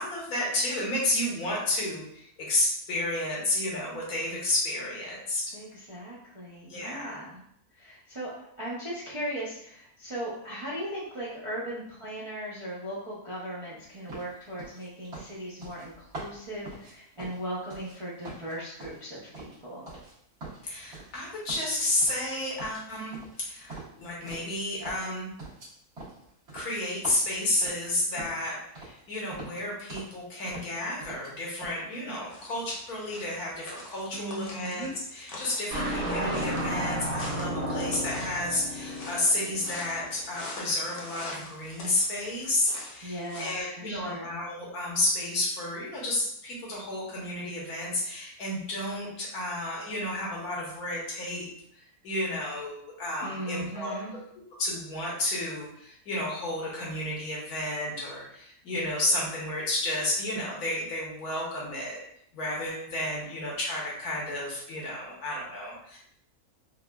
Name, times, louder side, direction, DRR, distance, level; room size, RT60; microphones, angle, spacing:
voice 1, 0.0-5.4 6.7-7.2 20.6-25.3 26.5-51.5 51.7-53.9 54.6-62.0 62.3-66.0, left 1 dB, 75° left, -4 dB, 1.5 m, -31 dB
voice 2, 5.5-7.4 7.7-19.9 34.1-34.9 43.0-44.4 53.2-54.1, right 1 dB, 40° right, -8 dB, 0.4 m, -38 dB
sound 1, 14.1-18.0 18.2-20.1 20.4-21.2 21.5-22.3 22.6-24.6 24.8-28.5 28.8-29.0 29.3-30.2 30.5-31.3 31.6-31.8, right 2 dB, 75° right, 1.9 m, -44 dB
sound 2, 32.3-43.6, left 2 dB, 60° left, 1.0 m, -45 dB
sound 3, 35.7-40.1, right 1 dB, 55° right, 1.4 m, -32 dB
4.6 x 2.3 x 2.3 m, 0.71 s
omnidirectional pair, 1.6 m